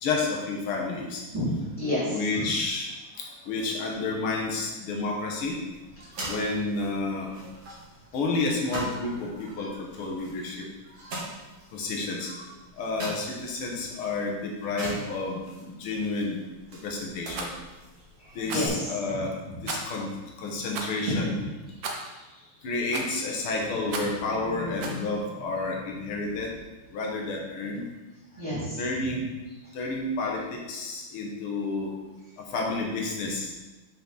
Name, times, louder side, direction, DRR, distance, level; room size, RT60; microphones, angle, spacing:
voice 1, 0.0-1.2 2.1-2.9 3.2-5.6 6.3-7.3 8.1-10.7 11.7-12.3 12.8-16.4 16.8-17.5 18.4-19.3 19.6-20.1 20.4-21.4 22.6-26.6 26.9-27.8 28.8-29.2 29.7-31.9 32.4-33.5, left 3 dB, 80° left, -1 dB, 2.1 m, -30 dB
voice 2, 1.3-2.4 6.0-6.3 9.3-9.8 10.8-11.2 12.3-12.4 18.2-19.6 21.0-21.5 21.8-22.5 28.3-28.8, left 1 dB, 15° right, -13 dB, 2.2 m, -32 dB
sound 1, 5.4-18.7, right 1 dB, 50° right, 1.9 m, -43 dB
Rattle, 17.3-17.5 18.4-18.8 19.6-20.0 20.7-21.0 21.8-22.1 22.9-23.2 23.9-24.2 24.8-25.0, right 3 dB, 65° right, 1.5 m, -35 dB
7.0 x 5.5 x 3.9 m, 1.1 s
omnidirectional pair, 2.4 m